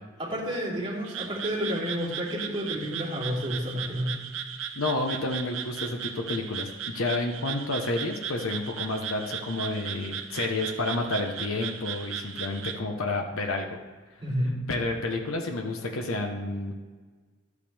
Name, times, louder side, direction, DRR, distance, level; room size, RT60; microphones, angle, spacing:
voice 1, 0.2-4.1 14.2-14.5, equal, 25° right, -5 dB, 3.0 m, -30 dB
Frog, 1.0-12.8, right 8 dB, 70° right, 0.7 m, -37 dB
voice 2, 4.7-13.7 14.7-16.8, left 2 dB, 90° left, 3 dB, 1.0 m, -30 dB
12.5 x 8.3 x 3.4 m, 1.4 s
head